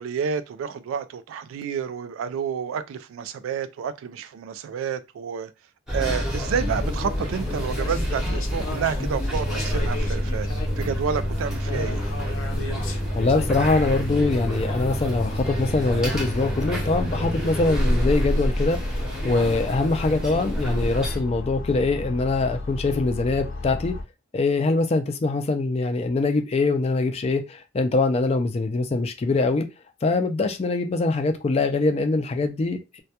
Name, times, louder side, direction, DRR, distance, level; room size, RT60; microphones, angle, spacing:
voice 1, 0.0-5.5 5.9-10.5 10.8-12.0, right 7 dB, 80° right, 0.3 m, -29 dB
sound 1, 5.9-21.2, equal, 5° right, 0.7 m, -28 dB
sound 2, 6.2-24.0, left 3 dB, 85° left, 0.6 m, -34 dB
voice 2, 13.2-18.8 19.2-23.9 24.3-29.7 30.0-33.0, left 3 dB, 30° left, 0.3 m, -23 dB
2.2 x 2.2 x 2.8 m
head